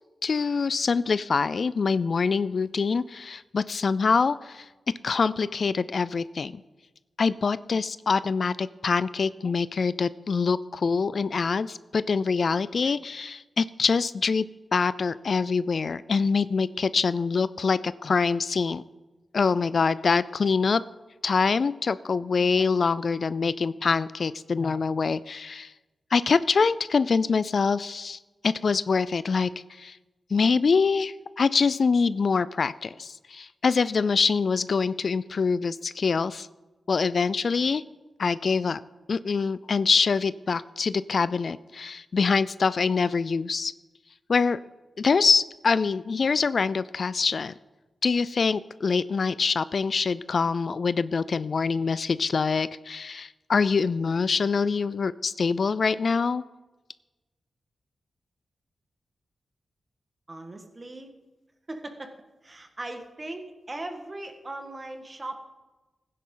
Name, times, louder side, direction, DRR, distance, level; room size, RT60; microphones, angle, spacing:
voice 1, 0.2-4.7 5.0-6.6 7.2-14.4 14.7-18.8 19.3-20.8 21.2-25.7 26.1-30.0 30.3-36.5 36.9-37.8 38.2-38.8 39.1-43.7 44.3-44.6 45.0-47.5 48.0-56.4, left 5 dB, 55° left, 17 dB, 0.3 m, -25 dB
voice 2, 60.3-61.1 61.7-62.1 62.4-65.4, right 2 dB, 30° right, 5 dB, 1.5 m, -38 dB
15.5 x 10.0 x 3.8 m, 1.1 s
wide cardioid pair, 95°, 0 cm